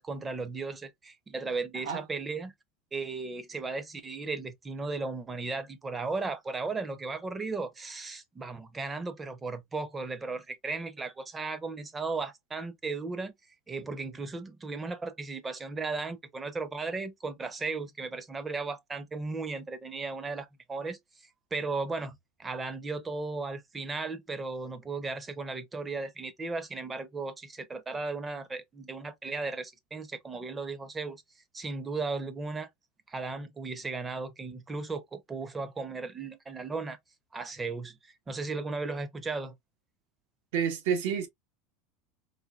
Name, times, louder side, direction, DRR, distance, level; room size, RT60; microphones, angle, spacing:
voice 1, 0.0-2.5 2.9-13.3 13.7-31.2 31.5-32.7 33.1-37.0 37.3-39.6, right 3 dB, 15° right, 0.7 m, -36 dB
voice 2, 40.5-41.3, right 7 dB, 75° right, 1.4 m, -28 dB
4.0 x 2.6 x 2.3 m
supercardioid pair, 130°, 0 cm